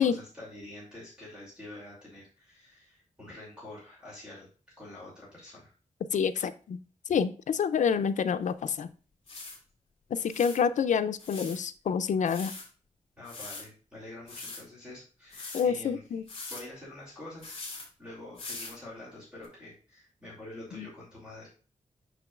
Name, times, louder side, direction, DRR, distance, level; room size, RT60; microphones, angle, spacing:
voice 1, 0.0-4.5 4.8-5.7 13.2-16.0 16.5-17.6 18.0-21.5, left 1 dB, 10° right, -7 dB, 2.6 m, -46 dB
voice 2, 6.1-6.8 7.1-8.9 10.1-12.5 15.5-16.2 20.8-20.9, left 7 dB, 80° left, 12 dB, 0.4 m, -27 dB
sound 1, 8.5-8.6 9.3-9.6 10.2-10.6 11.2-11.6 12.2-12.7 13.2-13.6 14.3-14.6 15.3-15.6 16.3-16.6 17.4-17.9 18.4-18.8 19.4-19.5, left 3 dB, 45° left, 2.6 m, -41 dB
6.8 x 6.1 x 2.4 m, 0.37 s
wide cardioid pair, 170°, 13 cm